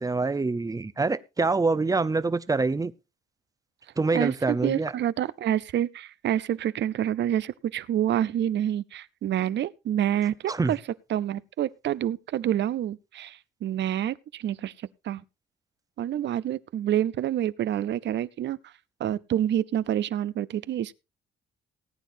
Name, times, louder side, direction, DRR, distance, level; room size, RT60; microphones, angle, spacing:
voice 1, 0.0-2.9 4.0-4.9 10.5-10.7, right 3 dB, 20° right, 0.7 m, -25 dB
voice 2, 4.1-10.8 11.1-14.7 15.0-15.2 16.0-18.6 19.0-20.9, right 11 dB, 65° right, 0.6 m, -27 dB
19.0 x 9.1 x 2.7 m
cardioid pair, 90°, 20 cm